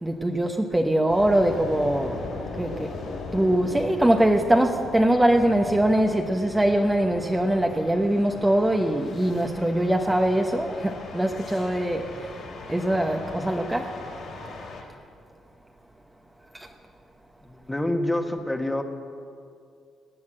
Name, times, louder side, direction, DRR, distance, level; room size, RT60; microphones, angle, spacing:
voice 1, 0.0-2.2 2.6-2.9 3.3-12.3 12.7-13.9 16.5-16.7, right 1 dB, 10° right, 3 dB, 1.0 m, -22 dB
sound 1, 1.1-14.8, left 3 dB, 65° left, 3.5 m, -38 dB
voice 2, 17.4-18.8, left 1 dB, 10° left, 6 dB, 1.4 m, -27 dB
18.5 x 9.5 x 7.7 m, 2.4 s
cardioid pair, 90°, 0 cm